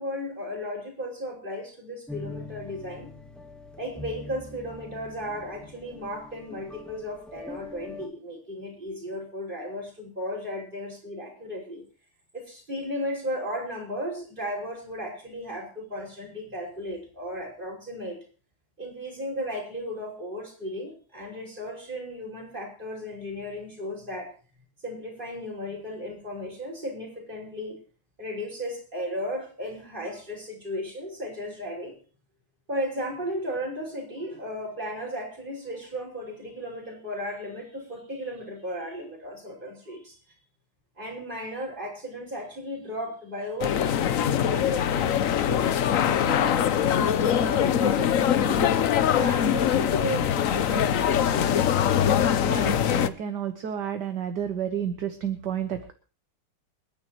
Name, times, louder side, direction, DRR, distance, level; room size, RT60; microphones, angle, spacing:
voice 1, 0.0-3.1 3.8-11.8 12.3-18.2 18.8-24.3 24.8-27.8 28.2-31.9 32.7-40.2 41.0-48.6 49.2-51.5, equal, 20° right, -1 dB, 5.8 m, -35 dB
sound 1, 2.1-8.1, left 2 dB, ahead, 1.6 m, -43 dB
sound 2, 43.6-53.1, left 9 dB, 65° left, 0.8 m, -23 dB
voice 2, 52.4-55.9, right 9 dB, 60° right, 8 dB, 1.7 m, -31 dB
28.0 x 10.5 x 3.0 m, 0.37 s
omnidirectional pair, 2.3 m